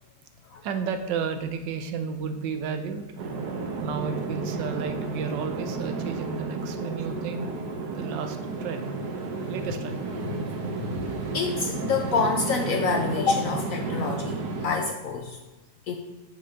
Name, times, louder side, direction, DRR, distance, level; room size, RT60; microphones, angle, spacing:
voice 1, 0.6-3.2 3.8-7.5 7.8-8.9 9.5-10.0 14.0-14.2, right 6 dB, 85° right, 7 dB, 1.3 m, -32 dB
sound 1, 3.2-14.7, right 3 dB, 65° right, 1.3 m, -32 dB
voice 2, 10.4-11.0 11.3-15.4 15.9-16.0, left 4 dB, 70° left, 4 dB, 0.8 m, -27 dB
7.4 x 6.3 x 2.8 m, 1.2 s
omnidirectional pair, 1.9 m